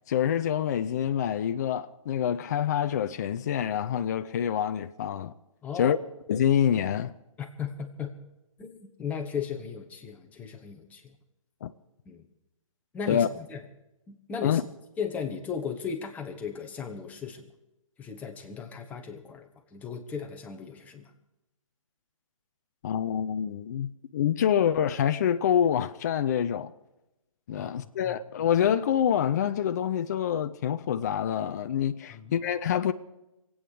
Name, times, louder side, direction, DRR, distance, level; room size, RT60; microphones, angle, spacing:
voice 1, 0.1-5.3 5.8-6.0 6.3-7.1 11.6-11.7 13.1-13.3 14.4-14.6 22.8-26.7 27.5-32.9, left 9 dB, 30° left, 0.5 m, -26 dB
voice 2, 5.6-6.0 7.4-8.2 8.6-11.2 12.0-12.3 12.9-13.6 14.1-14.6 15.0-17.5 18.0-21.1 27.6-28.2 32.1-32.3, left 6 dB, 10° left, 1.1 m, -36 dB
22.5 x 8.7 x 6.3 m
hypercardioid pair, 150°, 18 cm